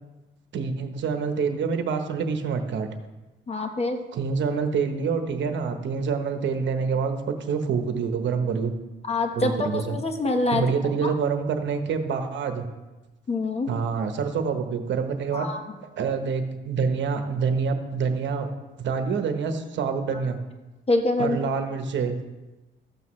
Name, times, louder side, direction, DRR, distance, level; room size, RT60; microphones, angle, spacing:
voice 1, 0.5-2.9 4.1-8.7 9.3-10.0 10.5-12.7 13.7-15.5 16.0-18.5 18.8-20.4 21.2-22.2, right 5 dB, 65° right, 7 dB, 1.0 m, -26 dB
voice 2, 3.5-4.0 9.1-10.6 11.0-11.1 13.3-13.7 15.3-15.6 20.9-21.4, left 2 dB, 30° left, 5 dB, 1.2 m, -25 dB
13.5 x 8.1 x 3.2 m, 1.1 s
cardioid pair, 90°, 20 cm